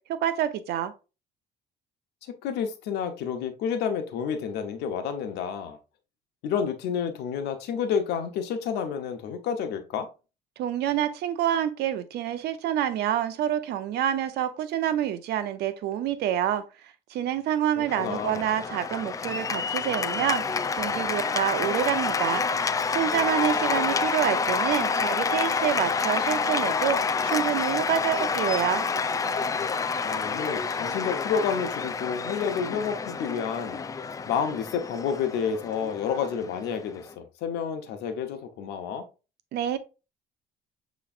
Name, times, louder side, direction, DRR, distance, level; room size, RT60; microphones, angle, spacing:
voice 1, 0.1-0.9 10.6-16.6 17.1-20.4 20.8-22.4 22.9-27.0 27.2-28.8 39.5-39.8, right 10 dB, 75° right, 0.6 m, -27 dB
voice 2, 2.4-5.8 6.4-10.1 17.8-18.4 30.0-33.8 34.3-39.1, left 7 dB, 85° left, 0.8 m, -30 dB
Cheering / Applause, 17.9-37.1, left 5 dB, 20° left, 0.3 m, -28 dB
6.9 x 3.1 x 2.4 m
cardioid pair, 110°, 17 cm